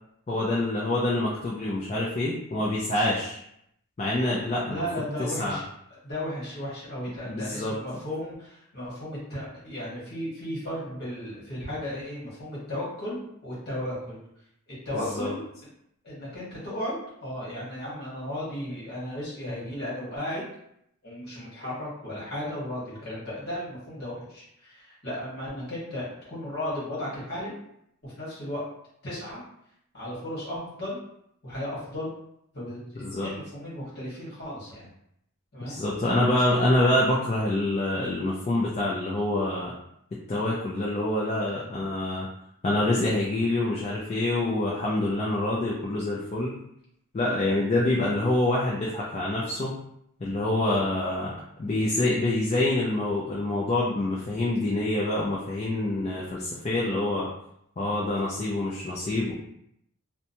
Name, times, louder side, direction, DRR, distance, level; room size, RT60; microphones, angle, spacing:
voice 1, 0.3-3.4 4.0-4.8 5.2-5.6 7.3-7.7 14.9-15.3 33.0-33.3 35.6-39.7 40.3-42.3 42.6-46.5 47.1-49.7 50.2-51.3 51.6-57.3 57.8-59.3, left 1 dB, 30° left, -5 dB, 0.3 m, -26 dB
voice 2, 4.6-5.6 6.0-14.2 14.7-15.4 16.0-16.9 17.2-20.4 21.0-27.5 28.0-28.6 29.0-29.4 29.9-31.0 31.4-32.1 32.5-34.9 35.5-35.8, left 1 dB, 45° left, -7 dB, 1.2 m, -35 dB
2.8 x 2.1 x 2.6 m, 0.75 s
head